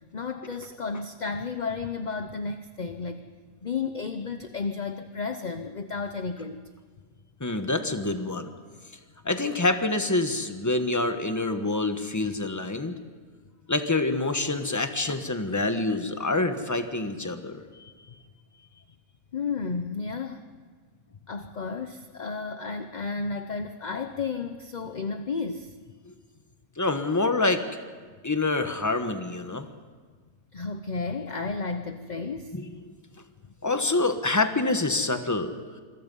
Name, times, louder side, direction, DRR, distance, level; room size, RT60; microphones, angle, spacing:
voice 1, 0.1-3.2 3.6-6.6 19.3-20.4 21.3-25.7 30.5-32.5, left 4 dB, 40° left, 8 dB, 0.7 m, -32 dB
voice 2, 7.4-8.5 9.2-12.9 13.7-17.9 26.0-26.1 26.8-27.6 28.2-29.7 32.5-32.8 33.6-35.5, left 2 dB, 15° left, 7 dB, 1.2 m, -26 dB
27.0 x 22.0 x 5.5 m, 1.5 s
omnidirectional pair, 1.6 m